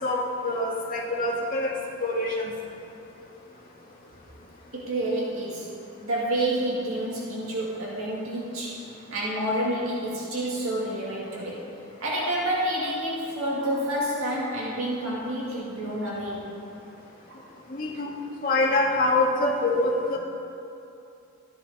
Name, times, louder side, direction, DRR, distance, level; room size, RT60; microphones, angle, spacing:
voice 1, 0.0-1.7 2.0-2.5 17.7-18.1 18.4-20.2, left 2 dB, 40° left, -4 dB, 1.9 m, -25 dB
voice 2, 4.7-5.7 6.0-11.6 12.0-16.5 17.3-17.4, right 1 dB, 75° right, -5 dB, 2.0 m, -29 dB
13.5 x 10.5 x 4.1 m, 2.8 s
head